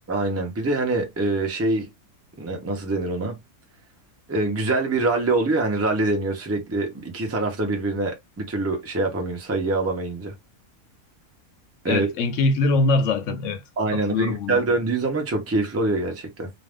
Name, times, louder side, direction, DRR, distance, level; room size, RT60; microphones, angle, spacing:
voice 1, 0.1-1.9 2.4-3.4 4.3-10.3 11.8-12.1 13.8-16.5, right 2 dB, 15° right, 0.5 m, -24 dB
voice 2, 11.9-13.6 13.9-14.6, left 3 dB, 65° left, 0.9 m, -23 dB
2.5 x 2.3 x 3.3 m
omnidirectional pair, 1.5 m